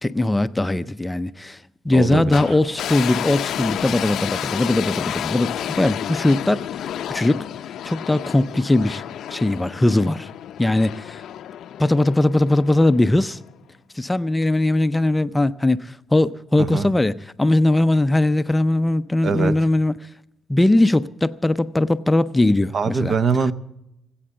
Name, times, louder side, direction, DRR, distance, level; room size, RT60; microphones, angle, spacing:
voice 1, 0.0-1.6 1.8-6.7 7.1-7.5 7.8-9.0 9.3-10.3 10.6-11.3 11.8-13.4 13.9-19.9 20.5-23.2, left 2 dB, 10° left, 0.5 m, -20 dB
voice 2, 1.9-2.6 16.6-16.9 19.2-19.6 22.7-23.5, right 5 dB, 50° right, 0.7 m, -23 dB
sound 1, 2.3-13.5, left 10 dB, 75° left, 0.5 m, -31 dB
19.0 x 8.6 x 7.9 m
cardioid pair, 90°, 0 cm